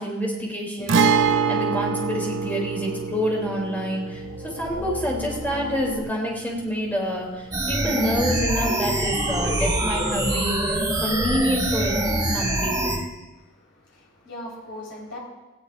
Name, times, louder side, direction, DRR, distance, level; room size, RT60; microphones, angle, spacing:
voice 1, 0.0-13.0, equal, 10° left, -2 dB, 3.2 m, -28 dB
sound 1, 0.8-6.0, left 3 dB, 85° left, 1.1 m, -38 dB
Guitar, 0.9-8.5 8.8-8.9 10.9-11.0, right 5 dB, 65° right, 0.5 m, -26 dB
sound 2, 7.5-13.0, right 1 dB, 20° right, 2.1 m, -24 dB
voice 2, 13.3-15.2, left 1 dB, 55° left, -4 dB, 4.6 m, -40 dB
18.0 x 16.5 x 2.6 m, 1.1 s
head